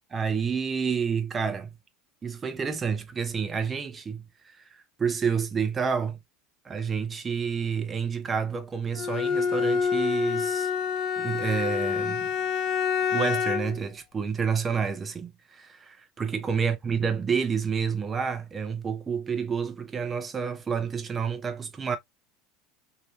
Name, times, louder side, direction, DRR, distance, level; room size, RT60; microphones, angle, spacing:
voice 1, 0.1-1.7 2.2-6.2 6.6-10.7 11.2-12.3 13.1-22.0, right 6 dB, 25° right, 0.8 m, -29 dB
Bowed string instrument, 8.9-13.8, left 6 dB, 50° left, 0.4 m, -27 dB
3.0 x 2.9 x 2.3 m
figure-of-eight pair, 75°, 0 cm